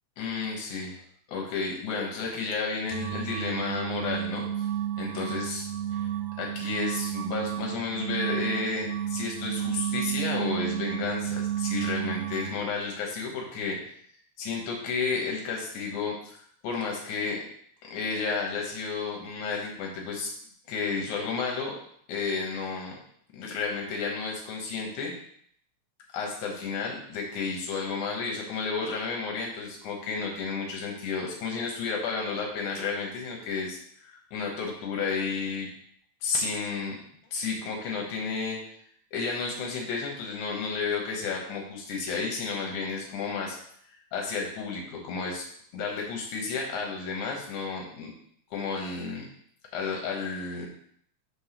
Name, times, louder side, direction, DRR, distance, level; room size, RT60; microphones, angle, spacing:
voice 1, 0.2-1.0 1.3-4.7 5.0-5.6 6.4-13.8 14.4-16.4 16.6-17.4 17.9-20.3 20.7-21.8 22.1-23.0 23.3-25.1 26.1-35.7 36.2-36.9 37.3-38.6 39.1-43.6 44.1-45.4 45.7-48.1 48.5-49.2 49.7-50.7, left 4 dB, 85° left, 0 dB, 2.6 m, -32 dB
sound 1, 2.9-12.6, right 11 dB, 80° right, 1.6 m, -32 dB
6.2 x 3.7 x 5.8 m, 0.65 s
omnidirectional pair, 3.4 m